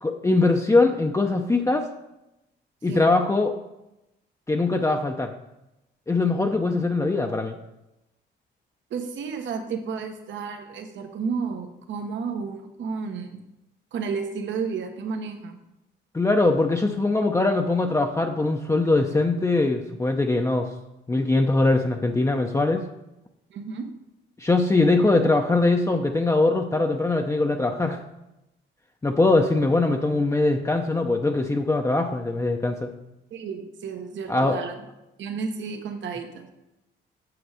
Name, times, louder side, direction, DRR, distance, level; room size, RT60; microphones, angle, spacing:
voice 1, 0.0-1.9 2.8-3.6 4.5-5.3 6.1-7.6 16.1-20.7 21.1-22.8 24.4-28.0 29.0-32.9 34.3-34.6, left 2 dB, 15° left, 3 dB, 0.6 m, -22 dB
voice 2, 8.9-13.4 13.9-15.6 23.5-23.9 33.3-34.8 35.2-36.5, right 5 dB, 70° right, 5 dB, 1.1 m, -32 dB
7.9 x 6.4 x 4.8 m, 0.91 s
cardioid pair, 90°, 20 cm